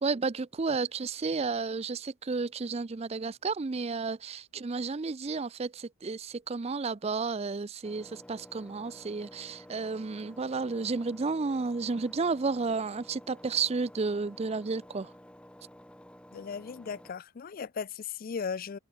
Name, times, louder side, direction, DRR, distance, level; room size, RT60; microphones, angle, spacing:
voice 1, 0.0-15.1, right 4 dB, 30° right, 0.4 m, -32 dB
Engine, 7.8-17.1, equal, 5° left, 4.0 m, -52 dB
voice 2, 16.3-18.8, left 6 dB, 40° left, 0.4 m, -37 dB
open air
head